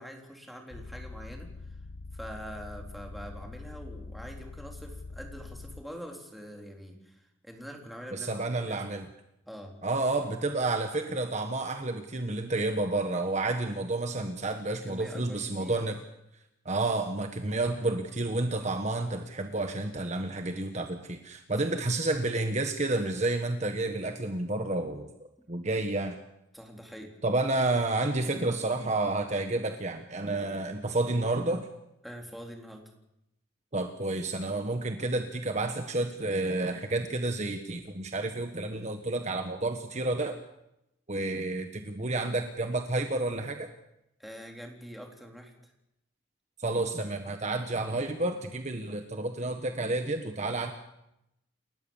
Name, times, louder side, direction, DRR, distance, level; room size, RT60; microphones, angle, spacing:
voice 1, 0.0-1.5 2.1-8.8 9.5-9.7 14.8-15.9 26.5-27.1 32.0-32.8 44.2-45.7, equal, ahead, 1 dB, 3.8 m, -44 dB
sound 1, 0.7-5.8, left 3 dB, 85° left, 0.8 m, -44 dB
voice 2, 8.1-9.1 9.8-16.0 16.6-25.1 25.5-26.2 27.2-31.7 33.7-40.4 41.1-43.7 46.6-50.7, right 2 dB, 40° right, 6 dB, 1.4 m, -30 dB
29.0 x 14.0 x 7.3 m, 0.85 s
head